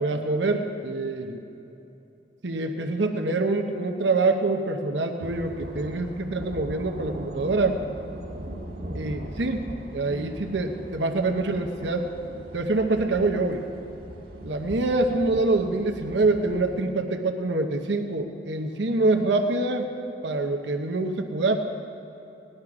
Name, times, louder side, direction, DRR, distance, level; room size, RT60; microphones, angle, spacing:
voice 1, 0.0-1.4 2.4-7.8 8.9-9.7 9.9-12.1 12.5-13.6 14.4-19.9 20.2-21.6, right 2 dB, 80° right, 4 dB, 0.9 m, -25 dB
sound 1, 5.2-16.8, right 1 dB, 55° right, 1.7 m, -39 dB
18.5 x 11.0 x 4.9 m, 3.0 s
head